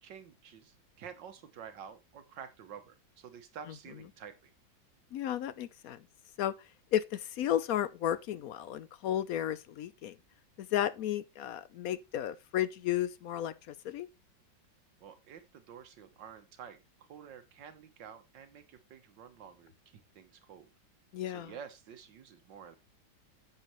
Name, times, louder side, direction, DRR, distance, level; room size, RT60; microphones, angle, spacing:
voice 1, 0.0-4.5 15.0-20.7 21.3-22.8, right 7 dB, 75° right, 1.7 m, -50 dB
voice 2, 5.1-6.0 6.4-6.5 6.9-10.2 10.6-13.5 13.8-14.1 21.1-21.5, left 11 dB, 70° left, 0.9 m, -33 dB
9.9 x 7.6 x 3.0 m
omnidirectional pair, 2.0 m